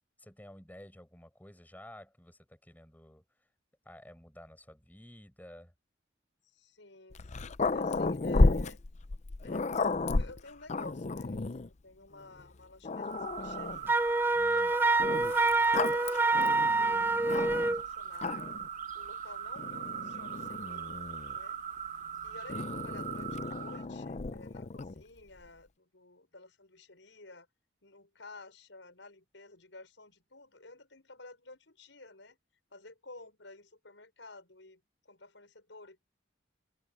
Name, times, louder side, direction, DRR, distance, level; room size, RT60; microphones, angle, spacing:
voice 1, 0.2-3.2 3.8-5.7 14.3-14.7, left 1 dB, 10° left, 6.3 m, -52 dB
voice 2, 6.5-8.8 9.4-9.7 10.1-14.0 14.5-18.5 18.9-21.0 21.3-21.6 22.2-27.5 27.8-32.4 32.7-36.0, left 2 dB, 75° left, 6.4 m, -52 dB
Growling, 7.1-11.7 12.4-12.5 12.8-13.9 15.0-17.8 18.1-18.7 19.6-21.4 22.5-25.0, left 3 dB, 40° left, 0.6 m, -32 dB
sound 1, 13.0-23.9, right 8 dB, 40° right, 1.6 m, -40 dB
Wind instrument woodwind instrument, 13.9-17.8, right 3 dB, 10° right, 0.3 m, -26 dB
head